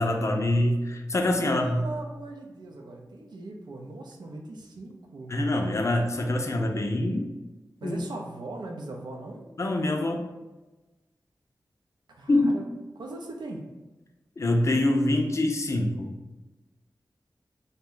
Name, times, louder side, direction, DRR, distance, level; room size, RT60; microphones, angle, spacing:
voice 1, 0.0-1.8 5.3-7.2 7.8-8.0 9.6-10.2 12.3-12.6 14.4-16.1, left 1 dB, 40° left, 2 dB, 0.3 m, -25 dB
voice 2, 1.4-5.3 7.8-9.4 12.1-12.6 13.0-13.7, right 2 dB, 90° right, 1 dB, 0.5 m, -39 dB
2.6 x 2.1 x 3.6 m, 1.1 s
wide cardioid pair, 105°, 7 cm